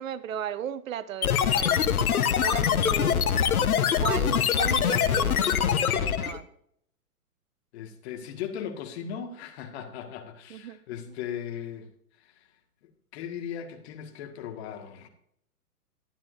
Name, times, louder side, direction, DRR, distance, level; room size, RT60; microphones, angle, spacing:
voice 1, 0.0-1.8 2.1-3.3 4.0-6.5 10.5-10.8, right 10 dB, 60° right, 15 dB, 0.7 m, -36 dB
sound 1, 1.2-6.4, left 8 dB, 65° left, 1.2 m, -24 dB
voice 2, 7.7-11.9 12.1-12.5 12.8-15.1, left 8 dB, 45° left, 5 dB, 1.9 m, -38 dB
12.5 x 10.5 x 2.7 m, 0.70 s
hypercardioid pair, 120°, 46 cm